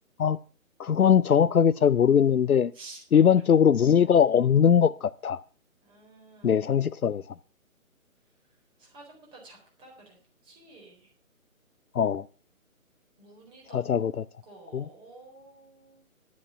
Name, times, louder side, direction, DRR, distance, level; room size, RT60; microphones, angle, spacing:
voice 1, 0.8-2.7 3.1-5.4 6.4-7.2 11.9-12.2 13.7-14.2 14.7-14.9, left 8 dB, 80° left, 0.6 m, -21 dB
voice 2, 2.7-3.2 5.8-6.8 8.8-10.2 10.4-11.1 13.2-13.8 14.5-16.0, right 2 dB, 10° right, 4.0 m, -51 dB
11.5 x 9.6 x 5.7 m
figure-of-eight pair, 145°, 43 cm